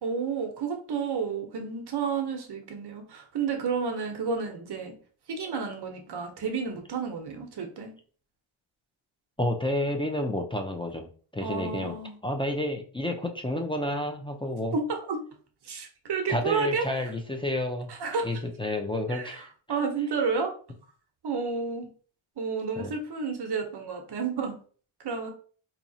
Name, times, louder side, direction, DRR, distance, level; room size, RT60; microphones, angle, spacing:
voice 1, 0.0-4.9 5.3-7.9 11.4-12.2 14.7-15.2 15.6-17.1 17.9-18.3 19.1-19.4 19.7-20.5 21.2-21.9 22.4-24.6 25.0-25.3, right 5 dB, 50° right, 3 dB, 0.9 m, -31 dB
voice 2, 9.4-11.1 11.3-12.0 12.2-14.8 16.3-17.9 18.2-19.5 22.8-22.9, left 1 dB, 10° left, 3 dB, 0.3 m, -30 dB
4.2 x 2.8 x 2.7 m, 0.42 s
cardioid pair, 110°, 50 cm